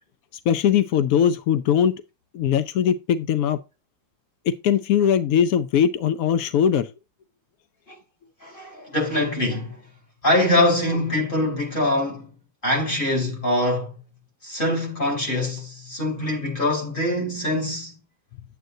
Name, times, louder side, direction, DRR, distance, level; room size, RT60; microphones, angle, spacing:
voice 1, 0.5-2.0 2.3-3.6 4.5-6.9, left 8 dB, 75° left, 0.8 m, -20 dB
voice 2, 8.4-9.8 10.2-12.3 12.6-14.0 14.4-18.0, left 1 dB, 25° left, 3.1 m, -23 dB
10.5 x 7.7 x 2.7 m
omnidirectional pair, 2.1 m